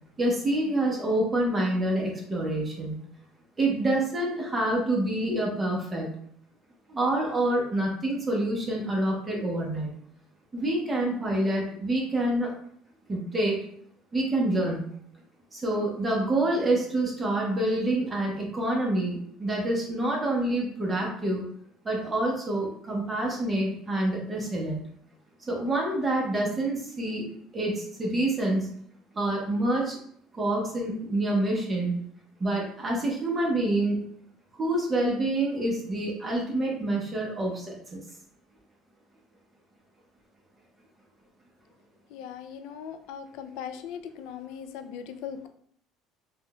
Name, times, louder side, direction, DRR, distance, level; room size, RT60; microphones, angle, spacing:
voice 1, 0.2-3.0 3.6-6.1 6.9-9.9 10.5-12.5 13.1-13.6 14.1-14.8 15.5-21.5 21.8-24.8 25.5-27.3 27.5-28.7 29.1-30.0 30.3-31.9 32.4-34.0 34.6-38.0, right 1 dB, 20° right, -2 dB, 0.9 m, -27 dB
voice 2, 42.1-45.5, left 8 dB, 75° left, 9 dB, 0.3 m, -39 dB
3.6 x 2.3 x 2.2 m, 0.63 s
supercardioid pair, 105°, 0 cm